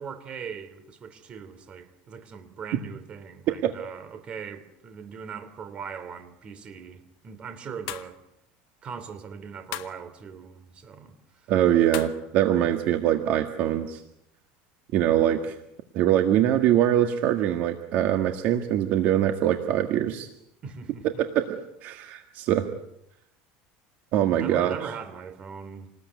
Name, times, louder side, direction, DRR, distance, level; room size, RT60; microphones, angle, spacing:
voice 1, 0.0-8.2 8.8-11.1 11.4-11.5 20.6-21.2 24.4-25.9, right 6 dB, 25° right, 3.0 m, -40 dB
sound 1, 7.9-8.2 9.7-10.0 11.9-12.3, left 16 dB, 70° left, 1.7 m, -36 dB
voice 2, 11.5-14.0 14.9-15.6 15.9-20.3 21.0-22.7 24.1-24.8, right 11 dB, 45° right, 1.8 m, -23 dB
28.0 x 20.0 x 9.5 m
cardioid pair, 170°, 4 cm